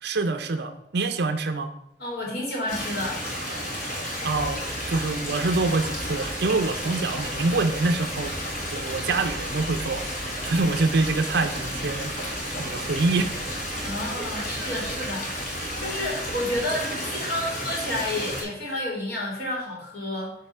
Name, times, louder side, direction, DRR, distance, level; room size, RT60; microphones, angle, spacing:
voice 1, 0.0-1.7 4.2-8.4 8.7-10.0 10.4-13.3, right 3 dB, 60° right, 7 dB, 0.6 m, -26 dB
voice 2, 2.0-3.2 13.8-20.3, left 1 dB, 55° left, -2 dB, 2.2 m, -30 dB
Stream, 2.7-18.4, equal, 40° left, 1.8 m, -32 dB
sound 1, 4.1-16.6, left 1 dB, 80° left, 1.5 m, -43 dB
6.8 x 3.3 x 5.5 m, 0.76 s
head